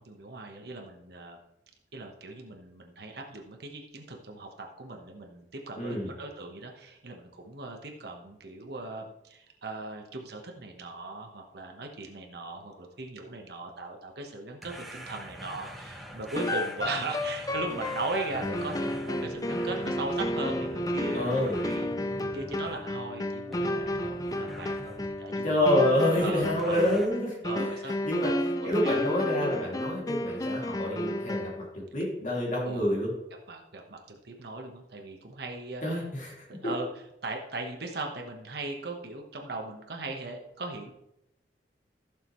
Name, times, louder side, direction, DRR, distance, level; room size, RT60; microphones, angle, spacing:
voice 1, 0.0-1.4 1.9-21.9 22.3-25.8 26.2-26.9 27.4-28.0 28.6-29.1 32.6-32.9 33.5-35.8 36.6-36.9 37.2-40.9, right 2 dB, 60° right, 2 dB, 1.3 m, -38 dB
voice 2, 5.7-6.1 21.1-21.6 25.4-27.6 28.0-31.7 31.9-33.1 35.8-36.3 36.6-36.7, left 1 dB, 45° left, -3 dB, 2.6 m, -28 dB
sound 1, 14.6-23.1 23.5-25.2 26.6-27.1, equal, ahead, 1.1 m, -44 dB
sound 2, 16.4-31.7, left 1 dB, 20° left, 0.5 m, -32 dB
15.0 x 6.7 x 3.2 m, 0.84 s
head